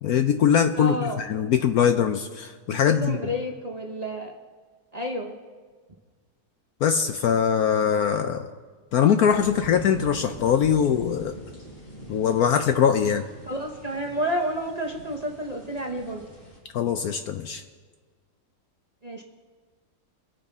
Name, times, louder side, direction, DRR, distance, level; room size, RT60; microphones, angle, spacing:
voice 1, 0.0-3.2 6.8-8.5 8.9-11.4 12.1-13.2 16.7-17.6, left 8 dB, 70° left, 8 dB, 1.0 m, -22 dB
voice 2, 0.8-1.2 2.7-4.3 4.9-5.3 13.5-16.2 19.0-19.2, equal, 30° right, 0 dB, 0.9 m, -30 dB
sound 1, 9.3-16.6, right 1 dB, 50° left, 4.3 m, -42 dB
24.0 x 9.6 x 3.6 m, 1.5 s
omnidirectional pair, 1.9 m